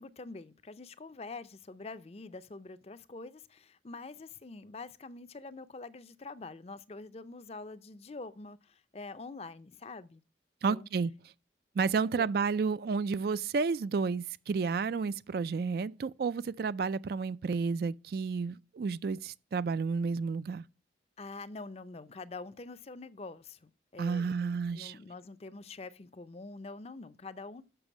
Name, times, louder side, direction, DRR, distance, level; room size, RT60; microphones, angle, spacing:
voice 1, 0.0-10.2 10.7-10.9 12.0-12.3 21.2-27.6, left 3 dB, 35° left, 0.5 m, -45 dB
voice 2, 10.6-11.1 11.8-20.6 24.0-25.0, right 5 dB, 55° right, 0.3 m, -31 dB
6.8 x 6.2 x 7.2 m
head